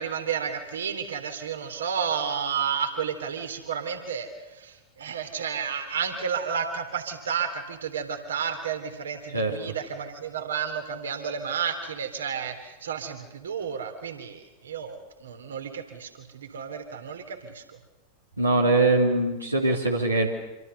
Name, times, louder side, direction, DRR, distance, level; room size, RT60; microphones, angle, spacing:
voice 1, 0.0-17.6, right 7 dB, 65° right, 7 dB, 3.3 m, -31 dB
voice 2, 18.4-20.3, right 2 dB, 85° right, 0 dB, 2.9 m, -22 dB
27.0 x 25.5 x 6.8 m, 1.1 s
figure-of-eight pair, 90°, 0 cm